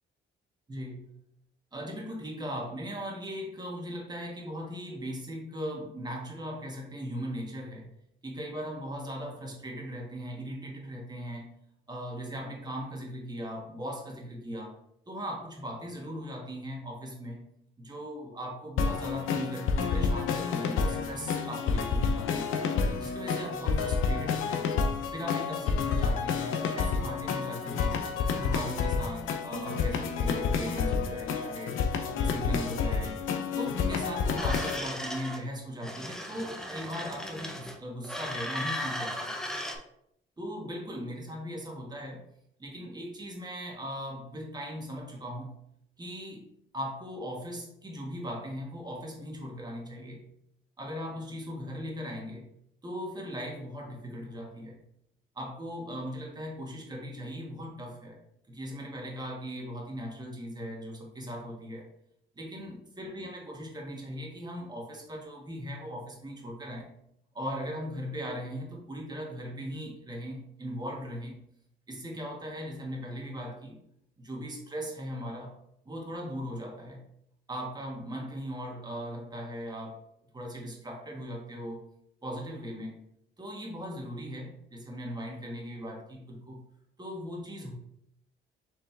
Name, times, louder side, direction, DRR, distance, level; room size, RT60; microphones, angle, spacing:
voice 1, 0.7-1.0 1.7-7.9 8.2-11.5 11.9-14.8 15.1-17.4 17.8-22.5 23.0-24.7 25.1-31.8 32.1-33.2 33.5-39.3 40.4-42.2 42.6-45.5 46.0-50.2 50.8-52.5 52.8-54.8 55.3-58.2 58.5-61.9 62.4-66.9 67.3-71.4 71.9-73.8 74.2-75.5 75.8-77.0 77.5-80.0 80.3-81.8 82.2-83.0 83.4-86.6 87.0-87.7, equal, 20° right, -1 dB, 1.4 m, -39 dB
sound 1, 18.8-34.8, left 5 dB, 80° left, 0.6 m, -29 dB
sound 2, 34.4-35.4 35.8-37.8 38.0-39.8, equal, 5° left, 0.6 m, -36 dB
4.5 x 3.3 x 3.3 m, 0.74 s
cardioid pair, 90°, 20 cm